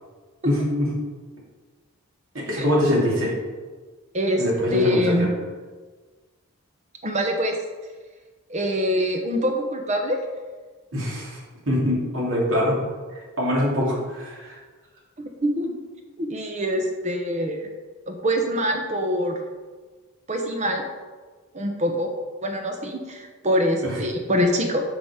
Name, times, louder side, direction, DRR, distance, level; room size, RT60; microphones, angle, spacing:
voice 1, 0.4-0.9 2.3-3.3 4.4-5.3 10.9-11.4 11.7-12.8 13.1-14.6 23.9-24.0, left 1 dB, 60° right, -4 dB, 2.8 m, -23 dB
voice 2, 4.7-5.3 7.0-7.6 8.5-10.2 15.2-15.7 16.2-17.7 18.1-19.4 20.3-20.8 21.5-22.1 22.4-24.8, equal, 30° right, 3 dB, 1.0 m, -24 dB
8.0 x 6.0 x 5.0 m, 1.4 s
head